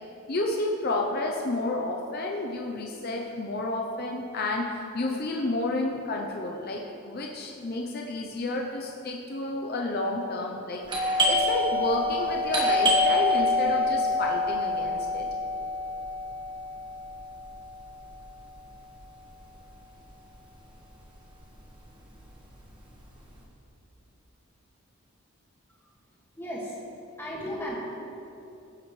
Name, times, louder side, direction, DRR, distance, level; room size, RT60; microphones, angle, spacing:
voice 1, 0.3-15.3, left 2 dB, 45° left, 0 dB, 0.7 m, -31 dB
Doorbell, 10.9-20.3 20.5-20.6 21.2-21.6 21.9-23.3, left 1 dB, 20° right, 1.5 m, -27 dB
voice 2, 26.4-26.8 27.2-27.8, equal, 10° left, -5 dB, 2.0 m, -34 dB
17.5 x 7.8 x 3.3 m, 2.9 s
head